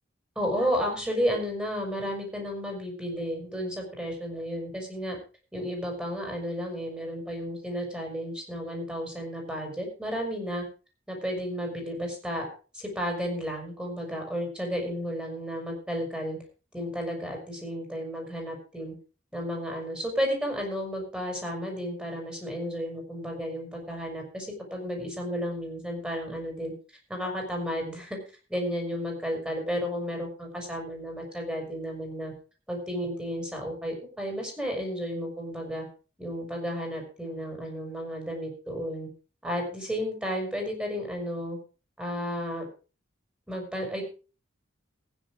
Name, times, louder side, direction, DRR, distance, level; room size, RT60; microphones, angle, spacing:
voice 1, 0.4-5.2 5.5-10.6 11.1-12.5 12.7-16.4 16.7-18.9 19.3-26.7 27.1-28.2 28.5-32.3 32.7-35.9 36.2-39.1 39.4-41.6 42.0-42.6 43.5-44.0, equal, 5° right, 2 dB, 5.4 m, -32 dB
15.5 x 9.8 x 4.9 m, 0.35 s
head